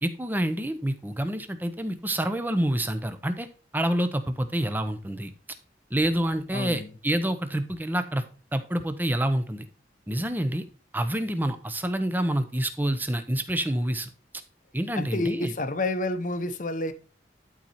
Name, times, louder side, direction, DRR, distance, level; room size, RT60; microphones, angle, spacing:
voice 1, 0.0-3.5 3.7-5.3 5.9-8.2 8.5-9.6 10.1-10.6 10.9-14.1 14.7-15.5, right 1 dB, 10° right, 0.7 m, -27 dB
voice 2, 6.5-6.9 14.9-16.9, left 2 dB, 45° left, 0.8 m, -29 dB
11.5 x 4.5 x 4.2 m
head